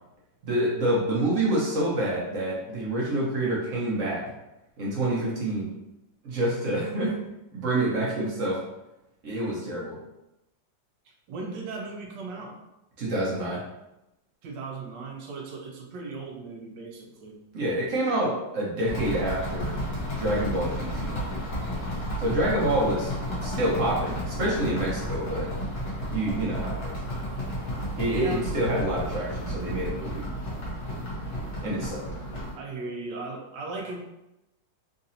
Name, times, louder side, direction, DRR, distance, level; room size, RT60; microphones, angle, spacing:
voice 1, 0.4-4.2 4.8-5.7 6.2-7.1 7.5-8.6 9.2-10.0 13.0-13.6 17.5-19.7 20.1-21.4 22.2-23.1 23.4-25.5 26.1-27.0 28.0-30.2 31.6-32.0, right 1 dB, 55° right, -5 dB, 1.1 m, -27 dB
voice 2, 11.1-12.6 14.4-17.4 28.1-28.4 32.6-34.0, right 3 dB, 80° right, 1 dB, 1.3 m, -37 dB
sound 1, 18.8-32.5, equal, 65° left, 1.5 m, -32 dB
3.9 x 2.6 x 2.7 m, 0.91 s
omnidirectional pair, 2.0 m